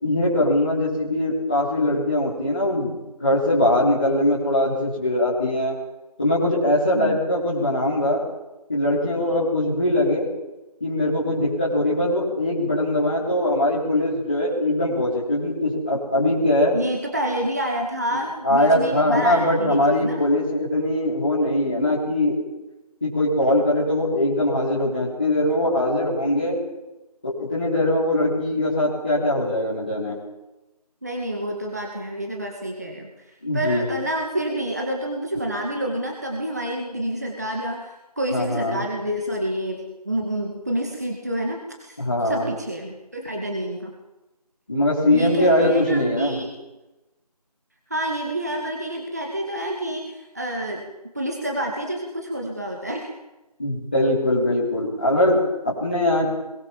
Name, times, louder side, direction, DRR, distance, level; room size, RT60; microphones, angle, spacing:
voice 1, 0.0-5.7 6.2-8.2 8.7-10.3 10.8-16.7 18.4-22.3 23.0-26.6 27.2-30.1 33.4-33.9 38.3-38.8 42.0-42.4 44.7-46.4 53.6-56.2, left 1 dB, 15° left, -10 dB, 3.0 m, -21 dB
voice 2, 16.7-20.2 31.0-42.0 42.2-43.9 45.1-46.5 47.9-53.1, right 1 dB, 25° right, 0 dB, 2.4 m, -28 dB
22.0 x 20.5 x 7.3 m, 1.0 s
figure-of-eight pair, 180°, 21 cm